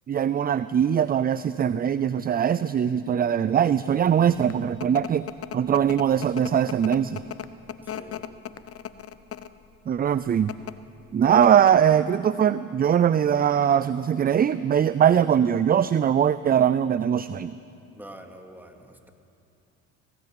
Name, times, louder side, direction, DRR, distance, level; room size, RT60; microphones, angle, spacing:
voice 1, 0.1-5.3 5.5-7.2 9.9-10.5 11.1-17.5, right 9 dB, 25° right, 15 dB, 0.4 m, -21 dB
sound 1, 4.2-9.6 10.3-10.7 11.1-11.2 11.4-11.9, left 10 dB, 40° left, 0.9 m, -37 dB
voice 2, 7.8-8.3 17.9-19.1, right 1 dB, 5° right, 4 dB, 2.4 m, -45 dB
19.0 x 17.5 x 8.9 m, 2.6 s
supercardioid pair, 90°, 35 cm